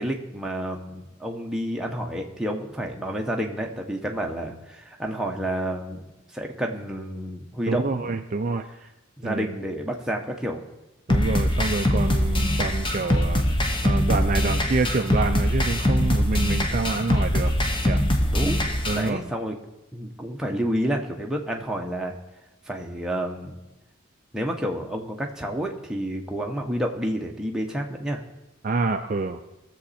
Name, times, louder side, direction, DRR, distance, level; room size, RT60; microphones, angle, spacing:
voice 1, 0.0-8.1 9.2-10.6 18.3-18.6 18.9-19.5 19.9-22.2 22.7-23.6 24.3-28.2, equal, 5° right, 0 dB, 1.0 m, -29 dB
voice 2, 7.7-8.6 9.2-9.5 11.1-17.5 17.8-18.0 18.9-19.2 28.6-29.4, right 3 dB, 40° right, 6 dB, 0.4 m, -27 dB
sound 1, 11.1-19.1, left 1 dB, 25° left, 0.9 m, -23 dB
20.0 x 7.3 x 4.2 m, 0.99 s
head